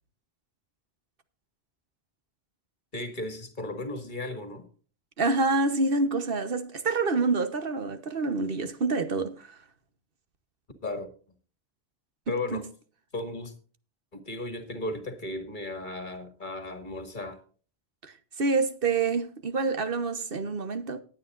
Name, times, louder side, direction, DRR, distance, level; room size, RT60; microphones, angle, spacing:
voice 1, 2.9-4.7 10.8-11.1 12.3-12.7 13.1-13.5 14.1-17.4, left 2 dB, 50° left, 2.2 m, -35 dB
voice 2, 5.2-9.6 12.5-12.6 18.0-21.0, right 3 dB, 60° right, 1.3 m, -27 dB
19.5 x 8.7 x 2.5 m
omnidirectional pair, 1.1 m